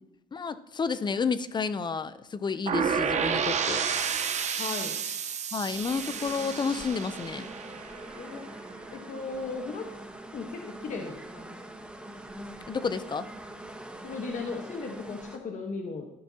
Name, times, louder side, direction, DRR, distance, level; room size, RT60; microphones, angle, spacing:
voice 1, 0.3-3.8 5.5-7.5 12.7-13.3, left 5 dB, 25° left, 13 dB, 0.6 m, -31 dB
sound 1, 2.7-8.5, right 6 dB, 45° right, 1.0 m, -31 dB
voice 2, 4.6-5.0 8.2-8.4 8.9-9.9 10.3-11.4 14.0-16.1, left 4 dB, 45° left, 2 dB, 1.2 m, -36 dB
sound 2, 5.7-15.4, right 1 dB, 5° right, 1.2 m, -44 dB
13.5 x 12.0 x 2.9 m, 0.89 s
cardioid pair, 110°, 17 cm